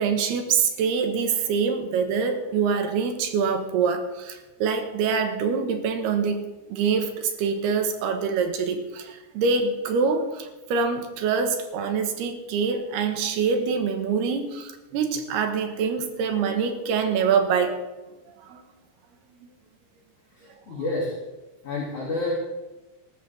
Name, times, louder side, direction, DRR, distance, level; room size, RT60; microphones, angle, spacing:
voice 1, 0.0-17.8 18.3-18.6, right 5 dB, 80° right, 6 dB, 3.3 m, -25 dB
voice 2, 20.3-21.1 21.6-22.3, left 2 dB, 50° left, -6 dB, 3.6 m, -29 dB
18.5 x 13.5 x 3.5 m, 1.1 s
omnidirectional pair, 4.7 m